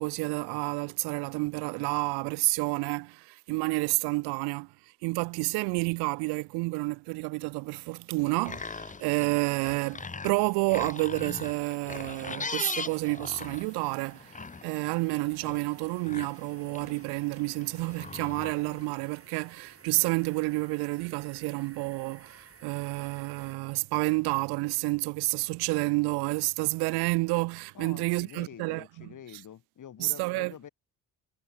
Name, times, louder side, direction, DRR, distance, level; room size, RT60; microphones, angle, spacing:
voice 1, 0.0-4.7 5.0-29.1 30.0-30.7, right 26 dB, 80° right, 0.8 m, -30 dB
sound 1, 8.2-19.0, left 4 dB, 20° left, 1.1 m, -41 dB
sound 2, 10.3-23.6, right 5 dB, 35° right, 6.3 m, -56 dB
voice 2, 27.7-30.7, left 9 dB, 50° left, 2.9 m, -47 dB
supercardioid pair, 65°, 38 cm